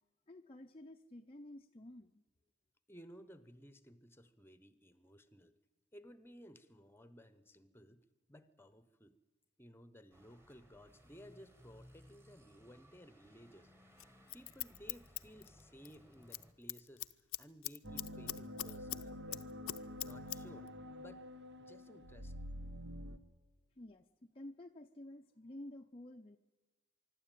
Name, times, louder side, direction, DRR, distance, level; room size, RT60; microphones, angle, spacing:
voice 1, 0.3-2.2 23.8-26.4, left 1 dB, 25° left, 3 dB, 0.6 m, -52 dB
voice 2, 2.9-5.5 5.9-9.2 9.6-13.7 14.3-17.1 17.4-19.4 20.0-21.3 21.6-22.3, equal, 10° left, 13 dB, 0.9 m, -58 dB
sound 1, 10.1-16.5, equal, 10° right, 1.6 m, -63 dB
Scissors, 14.0-16.0 16.2-16.4 16.7-19.0 19.3-20.4 20.7-20.8, left 16 dB, 80° left, 0.7 m, -42 dB
sound 2, 17.8-23.2, left 1 dB, 55° right, 1.1 m, -47 dB
24.5 x 12.5 x 9.1 m, 1.3 s
head